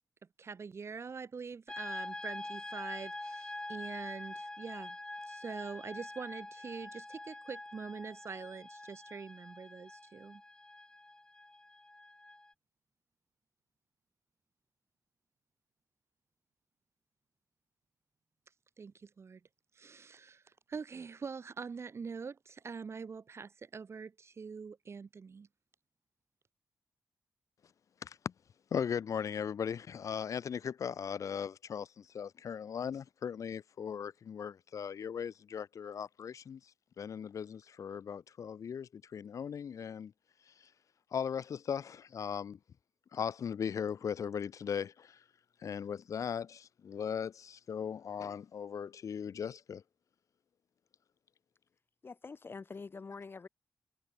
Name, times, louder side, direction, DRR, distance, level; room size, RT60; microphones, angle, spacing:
voice 1, 0.4-5.0 5.3-10.4 18.8-19.4 19.7-25.5, right 5 dB, 45° right, 2.0 m, -44 dB
sound 1, 1.7-12.5, left 2 dB, 15° left, 1.1 m, -45 dB
voice 2, 28.7-36.6 37.0-40.1 41.1-42.6 43.1-45.2 45.6-49.8, left 7 dB, 60° left, 0.5 m, -38 dB
voice 3, 52.0-53.5, left 4 dB, 35° left, 1.8 m, -45 dB
wide cardioid pair, 110°, 6 cm